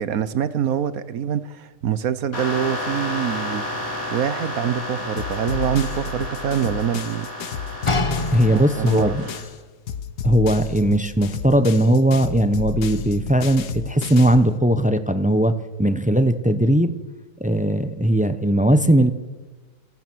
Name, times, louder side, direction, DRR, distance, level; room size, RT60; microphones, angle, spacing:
voice 1, 0.0-3.6 4.1-7.3 8.2-8.3 8.5-9.1, right 9 dB, 60° right, 1.3 m, -25 dB
sound 1, 2.3-9.4, left 1 dB, 55° left, 5.8 m, -31 dB
sound 2, 5.2-9.6 9.9-14.5, left 6 dB, 70° left, 1.6 m, -32 dB
sound 3, 7.9-9.1 9.9-10.0, left 2 dB, 20° left, 1.1 m, -26 dB
voice 2, 8.3-9.2 10.2-16.9 17.4-19.1, right 1 dB, 10° right, 0.6 m, -18 dB
28.5 x 17.0 x 6.2 m
omnidirectional pair, 1.8 m